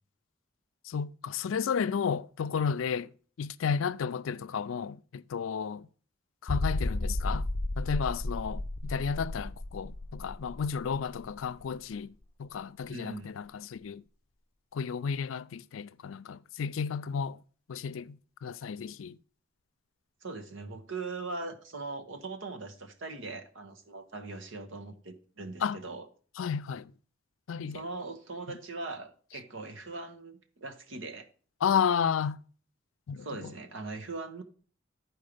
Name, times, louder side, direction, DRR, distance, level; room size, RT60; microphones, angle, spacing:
voice 1, 0.9-3.1 3.4-5.9 6.4-7.4 7.8-12.1 12.4-14.0 14.7-17.4 17.7-18.1 18.4-19.1 25.6-25.8 26.4-26.8 27.5-27.8 31.6-32.4 33.1-33.3, left 6 dB, 85° left, 0.4 m, -32 dB
sound 1, 6.5-11.9 12.2-12.3 12.8-12.9, left 2 dB, 30° left, 0.5 m, -34 dB
voice 2, 12.9-13.3 20.2-26.1 27.7-31.3 33.2-34.4, right 3 dB, 70° right, 1.2 m, -40 dB
10.5 x 4.7 x 4.9 m
head